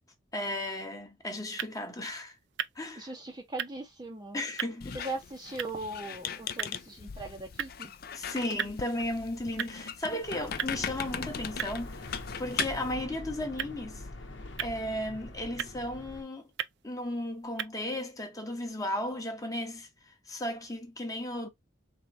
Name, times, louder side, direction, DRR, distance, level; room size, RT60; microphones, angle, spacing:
voice 1, 0.3-2.4 2.8-3.1 4.3-5.0 8.1-14.0 14.6-16.5 16.8-21.5, left 1 dB, 15° left, 0.9 m, -35 dB
sound 1, 1.5-17.7, right 9 dB, 55° right, 0.3 m, -42 dB
voice 2, 3.0-4.4 4.9-7.9, right 2 dB, 20° right, 0.7 m, -39 dB
Squeak, 4.8-12.9, left 7 dB, 50° left, 0.4 m, -39 dB
sound 2, 10.2-16.2, left 2 dB, 65° left, 0.9 m, -44 dB
4.3 x 3.5 x 2.6 m
head